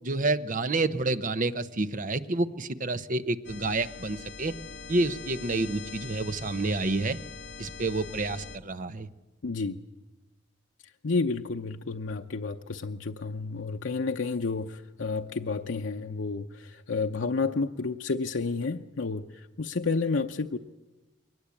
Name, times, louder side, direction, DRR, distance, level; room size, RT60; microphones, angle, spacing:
voice 1, 0.0-4.5 4.9-7.2 7.6-9.1, right 2 dB, 45° right, 12 dB, 0.9 m, -29 dB
sound 1, 3.4-8.6, left 5 dB, 65° left, 1.2 m, -43 dB
voice 2, 9.4-9.8 11.0-20.6, left 4 dB, 90° left, 4 dB, 0.7 m, -30 dB
22.5 x 19.0 x 8.4 m, 1.1 s
head